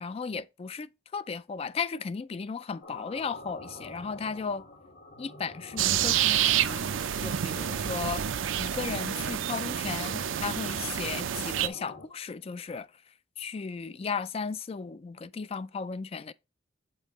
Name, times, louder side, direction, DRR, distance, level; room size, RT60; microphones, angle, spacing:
voice 1, 0.0-4.7 5.2-6.9 7.2-8.2 8.6-12.9 13.4-16.3, left 5 dB, 30° left, 0.3 m, -35 dB
sound 1, 2.8-12.1, left 2 dB, 60° left, 1.8 m, -47 dB
sound 2, 5.8-11.7, right 10 dB, 90° right, 0.5 m, -28 dB
8.2 x 5.3 x 3.0 m
head